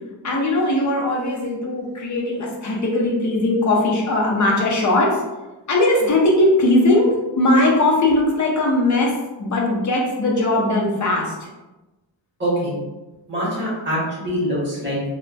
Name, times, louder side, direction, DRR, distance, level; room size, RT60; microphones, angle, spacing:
voice 1, 0.2-5.1 5.7-7.1 7.4-9.1 9.4-11.3, left 2 dB, 40° left, -2 dB, 0.6 m, -19 dB
voice 2, 12.4-12.7 13.3-15.0, equal, 25° right, -7 dB, 1.5 m, -24 dB
3.3 x 2.1 x 2.5 m, 1.1 s
wide cardioid pair, 165°, 46 cm